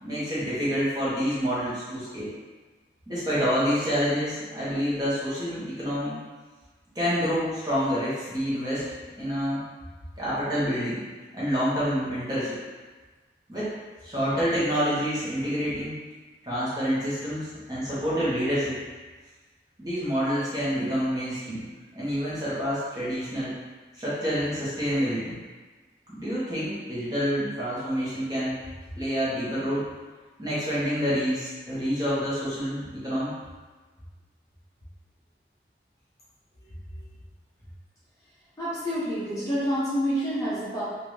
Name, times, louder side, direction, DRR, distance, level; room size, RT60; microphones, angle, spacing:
voice 1, 0.0-2.3 3.1-6.1 6.9-8.8 9.2-9.6 10.2-11.0 11.3-12.6 13.5-13.7 14.0-16.0 16.4-18.8 19.8-21.6 21.9-23.5 24.0-25.4 26.1-28.6 29.0-29.9 30.4-33.3, equal, 20° right, -10 dB, 1.2 m, -27 dB
voice 2, 38.6-40.8, equal, 20° left, -10 dB, 0.7 m, -28 dB
3.8 x 2.6 x 3.2 m, 1.3 s
head